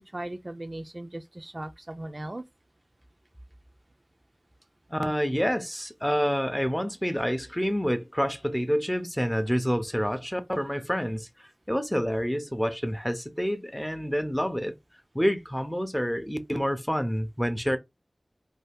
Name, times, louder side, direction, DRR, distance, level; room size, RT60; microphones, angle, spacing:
voice 1, 0.0-2.4, right 1 dB, 40° right, 0.3 m, -38 dB
voice 2, 4.9-11.3 11.7-14.7 15.1-17.8, equal, 5° left, 0.6 m, -28 dB
2.7 x 2.3 x 3.4 m
wide cardioid pair, 50°, 0 cm